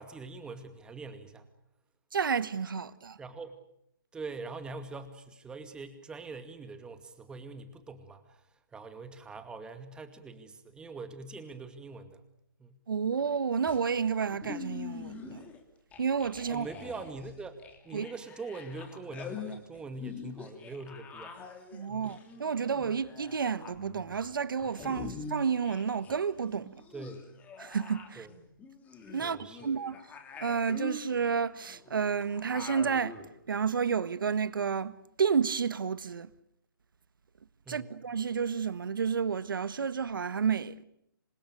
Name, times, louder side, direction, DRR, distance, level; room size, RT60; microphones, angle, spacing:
voice 1, 0.0-1.5 3.2-3.6 4.1-12.2 12.6-12.8 16.5-21.4 21.9-22.1 25.0-25.2 26.9-27.3 28.2-28.3 29.2-29.7 37.7-37.9, right 3 dB, 5° right, 2.3 m, -43 dB
voice 2, 2.1-3.2 12.9-15.4 16.0-16.7 17.9-18.1 21.7-26.7 27.6-28.3 29.1-29.4 29.6-29.9 30.4-33.2 33.5-36.3 37.7-40.8, right 6 dB, 70° right, 1.6 m, -30 dB
sound 1, 13.7-15.6 15.9-26.2 26.4-33.3, left 5 dB, 15° left, 3.1 m, -45 dB
27.0 x 26.0 x 6.8 m
hypercardioid pair, 150°, 11 cm